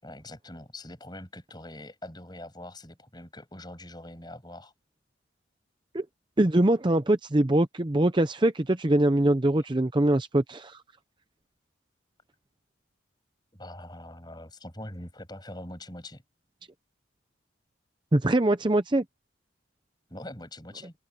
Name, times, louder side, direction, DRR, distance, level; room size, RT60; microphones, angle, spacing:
voice 1, 0.0-4.7 13.5-16.2 20.1-20.9, left 1 dB, 20° left, 7.9 m, -43 dB
voice 2, 6.4-10.8 18.1-19.0, right 1 dB, 25° right, 0.6 m, -23 dB
open air
head